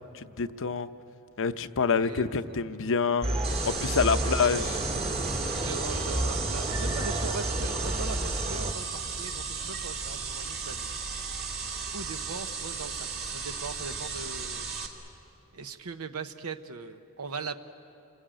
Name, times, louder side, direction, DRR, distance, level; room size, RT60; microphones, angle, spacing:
voice 1, 0.1-0.9 1.4-3.3 3.6-4.8, left 5 dB, 60° left, 11 dB, 0.7 m, -27 dB
voice 2, 1.9-2.6 4.0-4.6 5.6-10.9 11.9-14.7 15.5-17.6, right 4 dB, 70° right, 9 dB, 0.9 m, -40 dB
sound 1, 3.2-8.7, right 1 dB, 30° right, 1.7 m, -30 dB
sound 2, 3.4-14.9, right 5 dB, 45° right, 2.3 m, -35 dB
28.5 x 21.0 x 8.9 m, 2.9 s
head